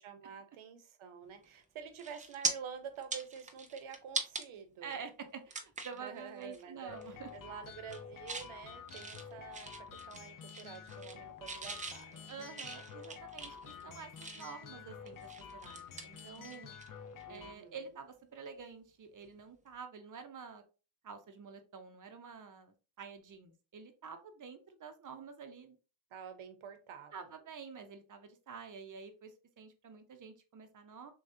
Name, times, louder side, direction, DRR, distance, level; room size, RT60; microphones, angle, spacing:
voice 1, 0.0-5.0 6.0-12.3 17.2-17.8 26.1-27.3, right 7 dB, 75° right, 8 dB, 1.0 m, -48 dB
sound 1, 1.4-1.6 2.0-2.5 3.0-4.4 4.9-5.0 5.5-6.0 6.4-6.6 6.9-7.4 7.7-8.5 8.9-10.2 10.5-11.2 11.5-14.6 15.1-16.9 17.2-17.4 19.2-19.4, right 4 dB, 20° right, 0.3 m, -41 dB
voice 2, 4.8-7.3 12.3-16.7 17.3-20.6 21.0-25.8 27.1-31.1, right 6 dB, 40° right, 7 dB, 0.7 m, -48 dB
sound 2, 6.9-17.5, left 7 dB, 40° left, 0.6 m, -50 dB
6.3 x 2.3 x 2.7 m, 0.33 s
cardioid pair, 145°, 49 cm